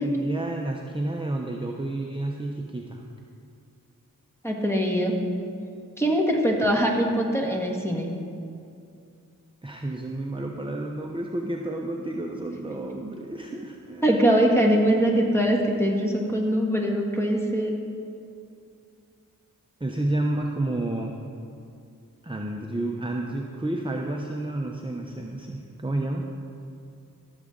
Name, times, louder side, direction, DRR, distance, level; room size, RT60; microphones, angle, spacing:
voice 1, 0.0-3.0 9.6-14.2 19.8-21.2 22.2-26.3, right 1 dB, 15° right, 0 dB, 0.7 m, -30 dB
voice 2, 4.4-5.2 6.0-8.1 14.0-17.7, equal, 5° left, 0 dB, 1.6 m, -22 dB
14.5 x 7.2 x 3.8 m, 2.4 s
cardioid pair, 40°, 34 cm